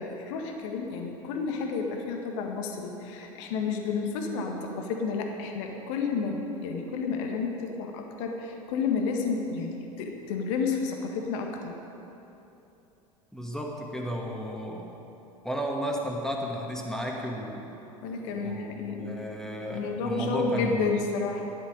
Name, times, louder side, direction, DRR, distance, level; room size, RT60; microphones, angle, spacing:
voice 1, 0.0-11.7 18.0-19.2 19.7-21.5, left 4 dB, 55° left, 2 dB, 1.6 m, -31 dB
voice 2, 13.3-14.9 15.4-17.7 18.3-21.0, equal, 5° left, 0 dB, 2.0 m, -33 dB
14.0 x 11.0 x 5.3 m, 3.0 s
figure-of-eight pair, 75°, 19 cm